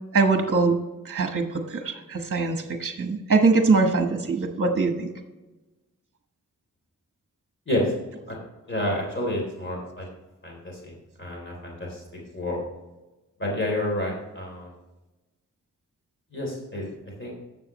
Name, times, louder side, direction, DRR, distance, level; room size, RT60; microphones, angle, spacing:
voice 1, 0.1-0.8 1.0-5.1, right 4 dB, 40° right, 5 dB, 1.1 m, -22 dB
voice 2, 8.7-10.1 10.4-12.0 12.3-12.6 13.4-14.7 16.3-16.9 17.2-17.3, left 1 dB, 35° left, -2 dB, 3.3 m, -29 dB
11.5 x 7.1 x 3.1 m, 1.1 s
cardioid pair, 55°, 33 cm